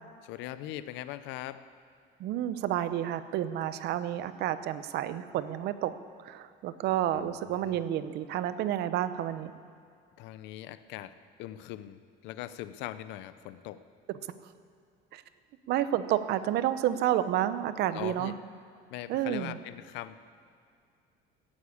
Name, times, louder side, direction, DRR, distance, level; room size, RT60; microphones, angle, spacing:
voice 1, 0.2-1.6 7.1-7.8 10.2-11.1 11.4-13.8 17.9-18.4 18.9-20.2, left 13 dB, 70° left, 13 dB, 0.7 m, -41 dB
voice 2, 2.2-5.9 6.2-9.5 15.1-15.2 15.7-18.3 19.1-19.6, right 12 dB, 60° right, 13 dB, 0.8 m, -30 dB
15.0 x 9.6 x 8.6 m, 2.3 s
cardioid pair, 135°, 19 cm